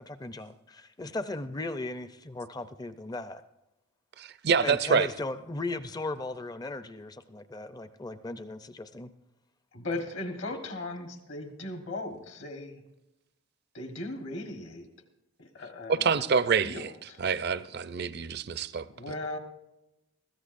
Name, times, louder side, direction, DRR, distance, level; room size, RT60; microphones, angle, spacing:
voice 1, 0.0-3.4 4.6-9.1, left 2 dB, 15° left, 0.5 m, -37 dB
voice 2, 4.2-5.1 15.9-16.9 17.2-18.9, right 6 dB, 45° right, 0.5 m, -26 dB
voice 3, 9.7-12.8 13.7-14.9 15.4-16.2 16.6-17.2 18.9-19.4, left 2 dB, 55° left, 1.3 m, -38 dB
22.0 x 15.5 x 2.6 m
head